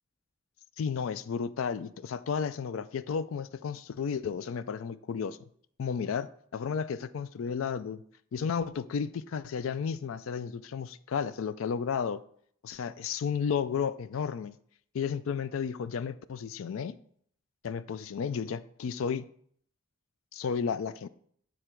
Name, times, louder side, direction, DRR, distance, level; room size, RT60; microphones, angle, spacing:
voice 1, 0.8-5.4 5.8-8.0 8.3-12.2 12.6-14.5 14.9-17.0 17.6-19.3 20.3-21.1, left 6 dB, 75° left, 0.4 m, -33 dB
8.9 x 3.7 x 4.5 m
head